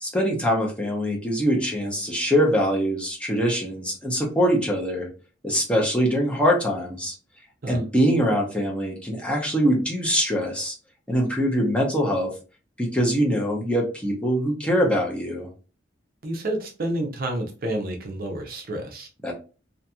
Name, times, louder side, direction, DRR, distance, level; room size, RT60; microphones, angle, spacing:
voice 1, 0.0-5.1 5.4-7.1 7.7-10.7 11.1-12.3 12.8-15.5 19.2-19.3, equal, 5° left, -2 dB, 0.6 m, -23 dB
voice 2, 16.2-19.1, right 1 dB, 50° right, 3 dB, 0.6 m, -29 dB
2.8 x 2.6 x 2.2 m, 0.34 s
head